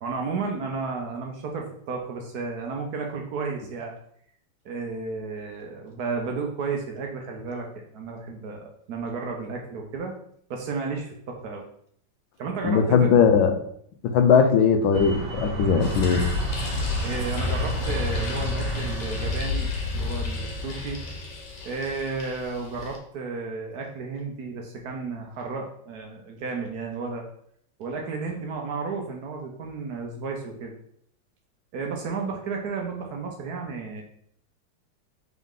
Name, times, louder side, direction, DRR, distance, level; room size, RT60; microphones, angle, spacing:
voice 1, 0.0-3.9 4.6-10.1 10.5-11.6 12.4-13.0 17.0-21.0 21.6-27.2 27.8-30.7 31.7-34.0, right 4 dB, 65° right, 2 dB, 1.1 m, -33 dB
voice 2, 12.6-13.5 14.0-16.2, left 6 dB, 90° left, 7 dB, 1.4 m, -19 dB
sound 1, 14.9-20.0, right 2 dB, 90° right, 1.6 m, -33 dB
sound 2, 15.8-23.0, left 3 dB, 70° left, 1.5 m, -30 dB
4.0 x 3.6 x 3.6 m, 0.66 s
omnidirectional pair, 2.1 m